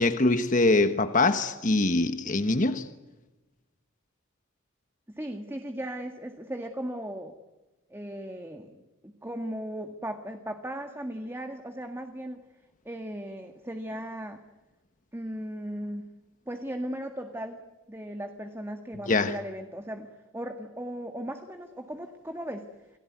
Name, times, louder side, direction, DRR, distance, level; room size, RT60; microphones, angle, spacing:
voice 1, 0.0-2.9 19.1-19.3, left 2 dB, 40° left, 1.2 m, -23 dB
voice 2, 5.1-7.4 7.9-12.4 12.9-14.4 15.1-16.0 16.5-17.6 17.9-20.1 20.3-22.7, right 1 dB, 10° right, 1.8 m, -37 dB
29.0 x 19.0 x 9.5 m
head